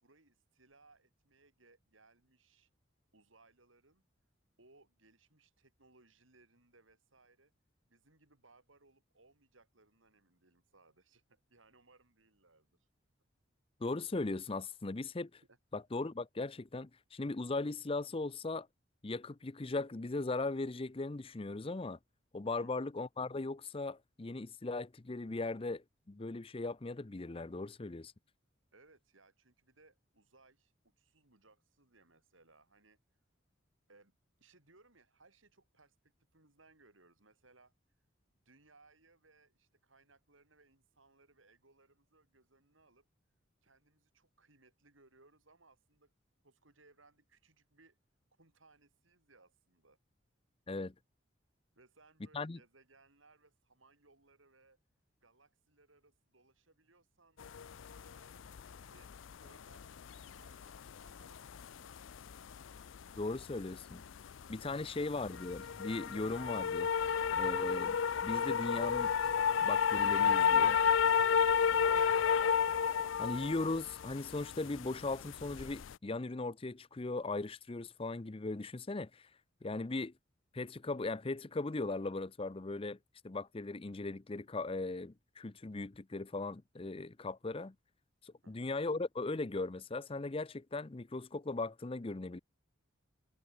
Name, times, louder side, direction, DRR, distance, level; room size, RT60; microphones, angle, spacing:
voice 1, 0.0-2.7 3.1-4.0 4.6-7.5 7.9-12.7 15.5-15.6 22.6-22.9 28.7-33.0 33.9-37.7 38.3-43.1 43.6-46.1 46.4-48.0 48.4-50.0 51.7-54.8 55.2-57.4 57.9-61.9 64.9-65.0 71.5-72.2 88.4-88.7, right 3 dB, 85° right, 6.1 m, -66 dB
voice 2, 13.8-15.4 15.7-18.7 19.0-22.0 22.3-28.1 50.7-50.9 52.3-52.6 63.2-64.0 64.5-66.9 67.3-69.1 69.6-70.8 73.2-79.3 79.6-80.1 80.5-83.0 83.2-87.7 88.2-92.4, left 3 dB, 30° left, 0.6 m, -38 dB
sound 1, 57.4-75.9, left 7 dB, 75° left, 0.5 m, -31 dB
sound 2, 65.2-72.4, equal, 5° left, 6.0 m, -59 dB
head